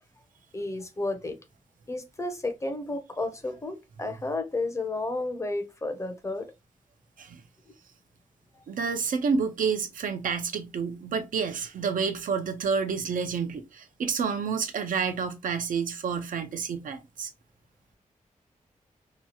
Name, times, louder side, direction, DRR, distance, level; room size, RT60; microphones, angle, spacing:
voice 1, 0.5-1.4 1.9-6.5, left 2 dB, 20° left, 0.5 m, -32 dB
voice 2, 8.7-17.3, right 5 dB, 90° right, 0.6 m, -29 dB
2.9 x 2.3 x 2.7 m
wide cardioid pair, 135°, 14 cm